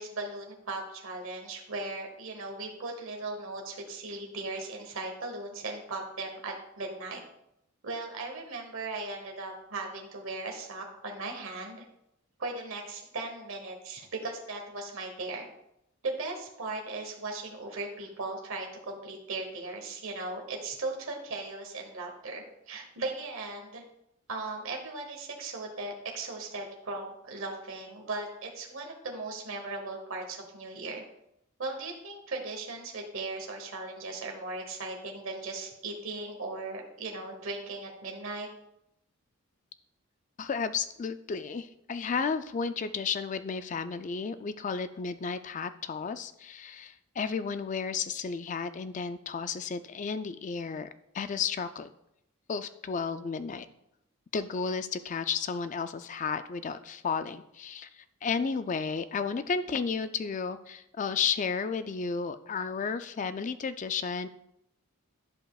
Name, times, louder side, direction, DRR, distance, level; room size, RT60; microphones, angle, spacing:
voice 1, 0.0-7.2 7.8-11.8 12.4-15.5 16.0-23.8 24.3-31.0 31.6-38.5, right 3 dB, 70° right, 1 dB, 1.1 m, -38 dB
voice 2, 40.4-50.9 51.1-51.9 52.5-53.7 54.3-64.3, left 5 dB, 35° left, 11 dB, 0.3 m, -33 dB
11.5 x 5.2 x 2.3 m, 0.81 s
head